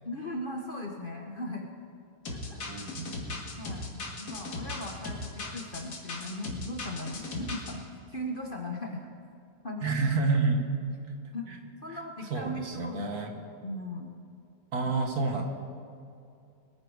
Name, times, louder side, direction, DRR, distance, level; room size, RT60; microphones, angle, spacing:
voice 1, 0.0-1.7 2.3-2.9 3.3-7.8 8.1-9.1 9.6-9.9 10.5-10.7 11.3-11.5 11.8-14.1, left 1 dB, 35° left, 1 dB, 1.0 m, -38 dB
sound 1, 2.3-7.7, left 2 dB, 60° left, 2.4 m, -38 dB
voice 2, 2.7-3.1 9.8-10.6 11.3-11.6 12.3-13.3 14.7-15.4, right 3 dB, 55° right, 2 dB, 1.9 m, -29 dB
21.5 x 9.9 x 4.8 m, 2.5 s
omnidirectional pair, 2.0 m